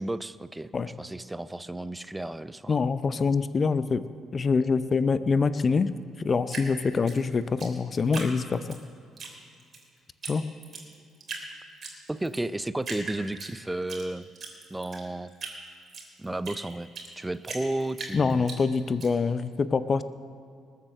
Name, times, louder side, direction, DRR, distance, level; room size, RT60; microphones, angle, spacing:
voice 1, 0.0-0.7 1.0-2.8 12.1-14.3 14.7-15.3 16.2-16.9 17.2-18.4, right 1 dB, 15° right, 15 dB, 0.5 m, -33 dB
voice 2, 2.7-4.0 4.3-5.9 6.2-8.6 10.3-10.5 18.1-20.0, left 4 dB, 40° left, 14 dB, 0.6 m, -25 dB
Drip, 6.5-8.8 9.2-9.8 10.2-10.3 10.6-11.5 11.8-12.4 12.8-14.0 14.4-17.1 17.5-19.1, right 4 dB, 45° right, 3.4 m, -39 dB
20.5 x 7.5 x 6.6 m, 2.3 s
hypercardioid pair, 45°, 0 cm